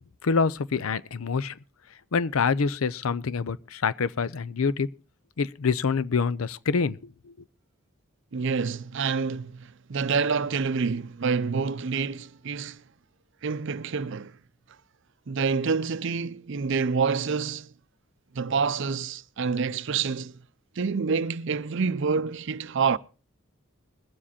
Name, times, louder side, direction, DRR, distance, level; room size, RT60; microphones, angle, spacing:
voice 1, 0.2-1.6 2.1-4.9 5.4-7.3, left 5 dB, 85° left, 0.6 m, -26 dB
voice 2, 8.3-12.8 13.4-14.3 15.3-17.7 18.3-20.4 20.8-23.0, right 5 dB, 60° right, 0.6 m, -27 dB
21.5 x 7.5 x 4.2 m
head